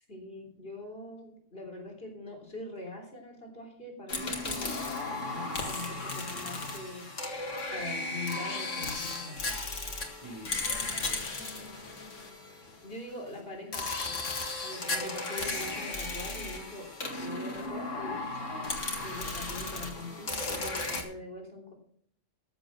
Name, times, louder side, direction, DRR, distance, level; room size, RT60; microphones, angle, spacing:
voice 1, 0.1-7.1 7.7-9.4 10.7-11.0 12.8-14.2 14.6-16.9 17.2-18.8 19.0-21.7, left 2 dB, 50° left, 1 dB, 3.6 m, -43 dB
sound 1, 4.1-12.9 13.7-21.0, left 3 dB, 90° left, 2.3 m, -35 dB
voice 2, 10.1-11.7, right 1 dB, 25° right, -2 dB, 4.6 m, -50 dB
14.0 x 7.9 x 5.9 m, 0.64 s
omnidirectional pair, 1.3 m